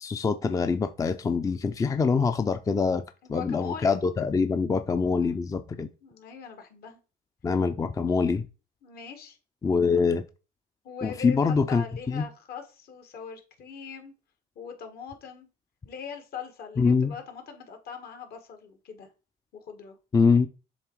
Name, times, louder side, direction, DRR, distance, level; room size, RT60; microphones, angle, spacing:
voice 1, 0.0-3.0 3.3-5.9 7.4-8.5 9.6-10.2 11.0-12.2 16.8-17.1 20.1-20.5, left 5 dB, 20° left, 0.4 m, -24 dB
voice 2, 3.2-3.9 5.1-5.4 6.0-7.0 8.8-9.4 9.8-10.0 10.8-14.1 14.6-15.5 15.8-19.1 19.6-20.0, left 6 dB, 65° left, 1.8 m, -41 dB
7.2 x 3.2 x 4.6 m
cardioid pair, 110°, 17 cm